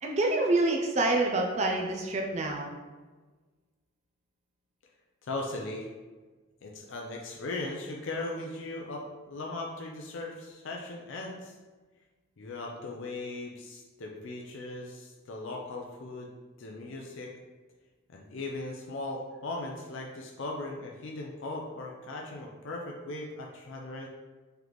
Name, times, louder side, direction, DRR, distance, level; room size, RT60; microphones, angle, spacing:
voice 1, 0.0-2.7, right 2 dB, 30° right, 1 dB, 0.4 m, -27 dB
voice 2, 5.2-5.9 6.6-11.5 12.4-16.3 16.6-17.3 18.1-24.1, left 2 dB, 60° left, -1 dB, 0.4 m, -38 dB
3.9 x 3.3 x 3.0 m, 1.3 s
head